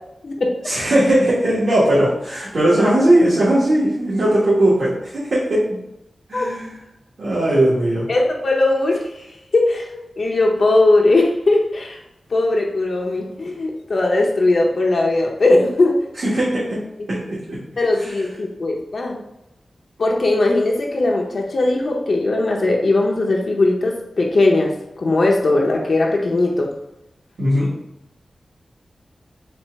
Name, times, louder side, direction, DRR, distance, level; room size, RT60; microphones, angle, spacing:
voice 1, 0.6-5.8 6.3-6.7 7.2-8.1 16.2-16.8 17.1-17.6 27.4-27.7, right 1 dB, 65° right, -10 dB, 1.5 m, -18 dB
voice 2, 8.1-9.3 9.5-9.9 10.2-12.0 12.3-16.0 17.8-19.2 20.0-26.7, left 2 dB, 60° left, 0 dB, 0.7 m, -18 dB
4.2 x 2.5 x 4.5 m, 0.87 s
wide cardioid pair, 105°, 0 cm